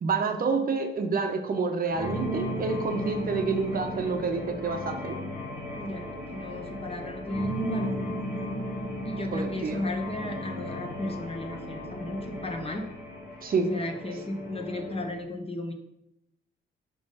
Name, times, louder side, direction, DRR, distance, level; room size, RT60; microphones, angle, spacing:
voice 1, 0.0-5.2 9.3-9.8 13.4-13.7, right 4 dB, 45° right, 5 dB, 0.7 m, -28 dB
sound 1, 1.9-15.2, equal, 55° left, 1.9 m, -36 dB
voice 2, 5.8-8.0 9.1-12.9 13.6-15.7, left 1 dB, 30° left, 4 dB, 0.8 m, -34 dB
5.2 x 3.4 x 5.4 m, 0.83 s
cardioid pair, 120°, 21 cm